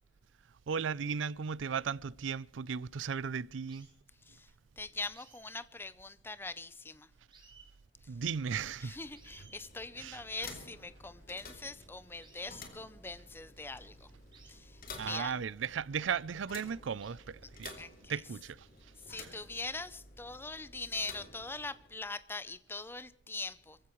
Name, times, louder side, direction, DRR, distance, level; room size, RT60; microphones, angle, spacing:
voice 1, 0.7-3.9 8.1-9.0 10.0-10.2 15.0-17.8 18.1-18.7 19.1-19.3, right 6 dB, 90° right, 0.5 m, -36 dB
sound 1, 2.7-3.0 3.7-3.9 5.1-6.7 7.0-7.1 7.3-7.7 8.7-8.8 9.1-9.7 12.2-12.7 14.3-14.6 15.7-15.8 17.0-17.1, right 5 dB, 25° right, 5.4 m, -60 dB
voice 2, 4.8-7.1 8.0-8.1 8.8-14.1 14.5-15.3 17.8-18.1 19.1-23.8, left 3 dB, 10° left, 0.6 m, -42 dB
sound 2, 8.8-22.1, left 3 dB, 50° left, 3.0 m, -52 dB
25.0 x 15.5 x 3.1 m
head